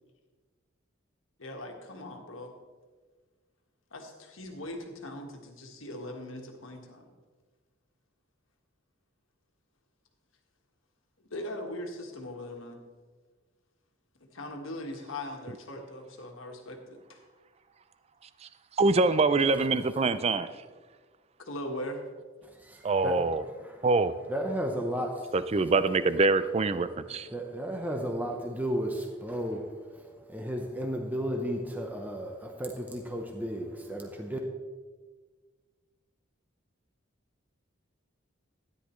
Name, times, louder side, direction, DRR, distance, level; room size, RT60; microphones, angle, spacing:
voice 1, 1.4-2.5 3.9-7.1 11.3-12.8 14.3-17.2 21.4-22.0, left 1 dB, 80° left, 1.6 m, -40 dB
voice 2, 18.8-20.5 22.8-23.4 23.8-24.1 25.3-27.3, right 3 dB, 30° right, 0.4 m, -24 dB
voice 3, 22.4-23.9 24.3-25.3 27.0-34.4, equal, 10° right, 0.8 m, -34 dB
13.0 x 10.5 x 3.1 m
head